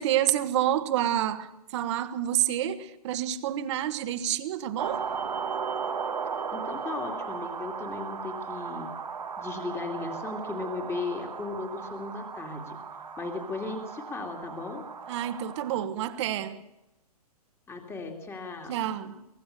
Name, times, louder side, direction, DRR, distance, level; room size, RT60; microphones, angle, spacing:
voice 1, 0.0-5.0 15.1-16.6 18.7-19.2, right 11 dB, 45° right, 1.5 m, -28 dB
sound 1, 4.8-15.9, right 6 dB, 85° right, 1.7 m, -36 dB
voice 2, 6.5-8.9 9.4-12.8 13.2-14.8 17.7-18.9, left 3 dB, 10° left, 2.5 m, -36 dB
24.0 x 18.5 x 6.8 m
hypercardioid pair, 130°, 20 cm